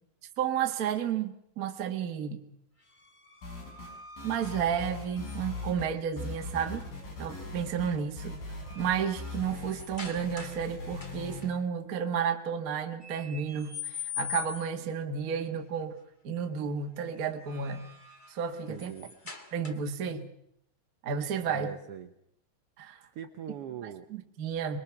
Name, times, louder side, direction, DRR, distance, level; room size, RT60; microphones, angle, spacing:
voice 1, 0.4-2.4 4.2-6.9 7.2-8.4 8.7-16.0 16.2-17.8 18.3-18.9 19.5-20.3 21.0-21.7 22.8-23.0 23.8-24.8, right 7 dB, 50° right, 4 dB, 1.0 m, -32 dB
sound 1, 2.8-5.7 7.5-7.8 8.2-10.7 11.0-11.5 13.0-14.9 17.2-20.1, left 7 dB, 40° left, 0.6 m, -44 dB
sound 2, 3.4-5.9 6.2-11.4, left 3 dB, 85° left, 7.9 m, -40 dB
voice 2, 18.7-19.1 21.5-22.1 23.1-24.1, right 8 dB, 75° right, 7 dB, 1.3 m, -40 dB
24.5 x 22.0 x 5.9 m, 0.75 s
omnidirectional pair, 4.0 m